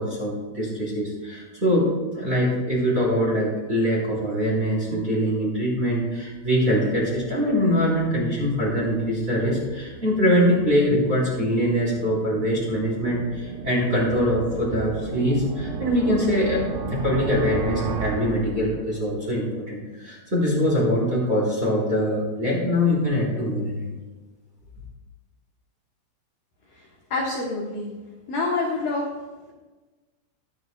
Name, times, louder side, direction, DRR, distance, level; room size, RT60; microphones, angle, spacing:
voice 1, 0.0-23.8, equal, 15° right, -4 dB, 2.7 m, -23 dB
sound 1, 6.3-19.2, right 5 dB, 75° right, 2.6 m, -35 dB
voice 2, 27.1-27.9 28.3-29.1, left 3 dB, 70° left, -3 dB, 2.1 m, -26 dB
23.5 x 9.2 x 2.3 m, 1.2 s
omnidirectional pair, 6.0 m